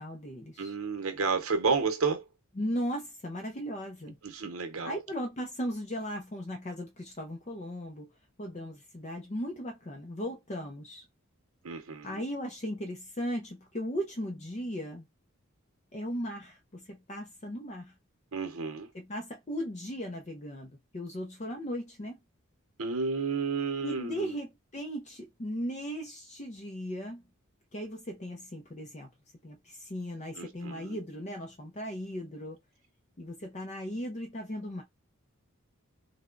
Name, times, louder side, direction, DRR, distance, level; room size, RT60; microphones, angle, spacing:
voice 1, 0.0-0.7 2.6-4.2 4.8-8.1 8.4-11.0 12.0-15.1 15.9-17.9 18.9-22.2 23.8-27.2 27.7-29.1 29.4-32.6 33.2-34.8, equal, 35° left, 0.6 m, -37 dB
voice 2, 0.6-2.2 4.2-5.0 11.6-12.2 18.3-18.9 22.8-24.4 30.4-31.0, right 4 dB, 85° right, 0.8 m, -31 dB
3.3 x 2.2 x 3.7 m
head